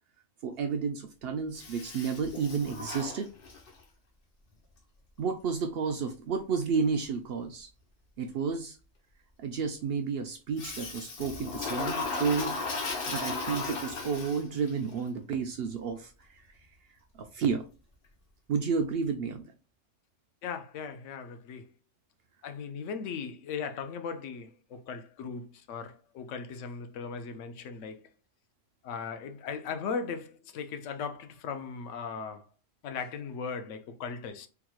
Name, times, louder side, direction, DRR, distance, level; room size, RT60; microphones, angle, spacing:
voice 1, 0.4-3.3 5.2-7.7 8.2-8.8 9.4-12.6 13.1-16.4 17.1-17.6 18.5-19.5, right 5 dB, 65° right, 0.6 m, -31 dB
Toilet flush, 1.6-3.8 10.6-14.7, left 4 dB, 50° left, 0.9 m, -36 dB
voice 2, 20.4-21.7 22.4-28.0 28.8-32.5 32.8-34.5, left 5 dB, 75° left, 0.9 m, -38 dB
3.5 x 2.9 x 2.3 m
omnidirectional pair, 1.3 m